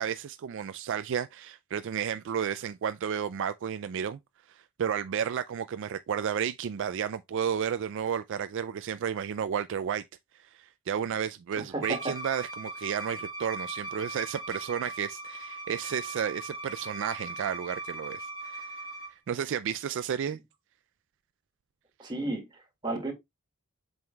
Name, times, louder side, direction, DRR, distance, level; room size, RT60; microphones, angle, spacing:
voice 1, 0.0-4.2 4.5-10.0 10.3-18.8 19.3-20.4, right 8 dB, 60° right, 0.3 m, -32 dB
voice 2, 11.6-12.1 22.0-22.5 22.8-23.1, right 2 dB, 20° right, 2.1 m, -32 dB
Bowed string instrument, 11.8-19.1, right 2 dB, 20° left, 1.8 m, -39 dB
7.7 x 5.5 x 2.3 m
head